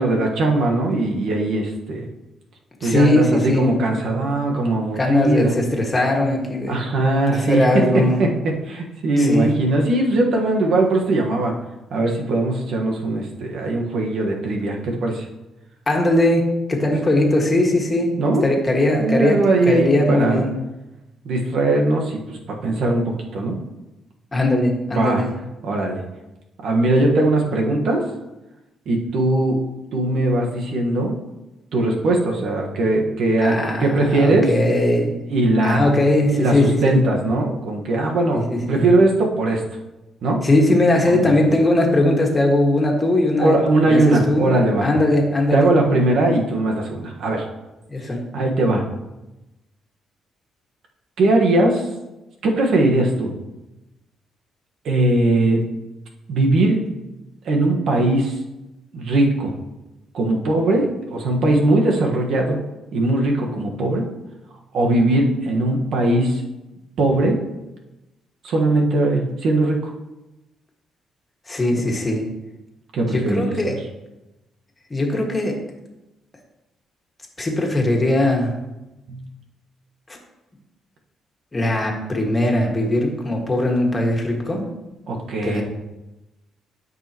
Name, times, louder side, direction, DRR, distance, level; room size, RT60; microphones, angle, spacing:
voice 1, 0.0-2.1 2.8-5.6 6.7-7.6 7.9-11.5 11.9-15.3 18.2-18.4 19.0-20.5 21.2-23.6 24.9-25.2 25.6-26.0 26.6-28.0 28.8-29.7 29.9-31.2 31.7-34.5 35.3-35.9 36.3-39.6 40.2-40.4 41.1-41.3 43.4-44.9 45.5-47.4 48.3-48.8 51.2-51.9 52.4-53.3 54.8-55.6 56.3-56.8 57.4-58.4 58.9-59.5 60.1-62.6 62.9-64.0 64.7-66.4 67.0-67.4 68.4-69.9 71.7-71.8 72.9-73.7 79.1-79.2 85.1-85.6, right 2 dB, 70° right, 1 dB, 1.5 m, -20 dB
voice 2, 2.8-3.8 4.9-6.8 7.3-8.2 9.2-9.6 15.9-16.4 16.7-18.1 18.4-20.5 24.3-25.3 33.4-35.2 35.6-37.0 38.3-38.9 40.4-43.6 43.8-44.5 44.8-45.7 47.9-48.2 71.5-72.2 73.1-73.8 74.9-75.6 77.4-78.5 80.1-80.2 81.5-84.6 85.4-85.6, left 1 dB, 25° left, 0 dB, 1.9 m, -19 dB
12.5 x 5.5 x 3.0 m, 0.99 s
cardioid pair, 90°, 0 cm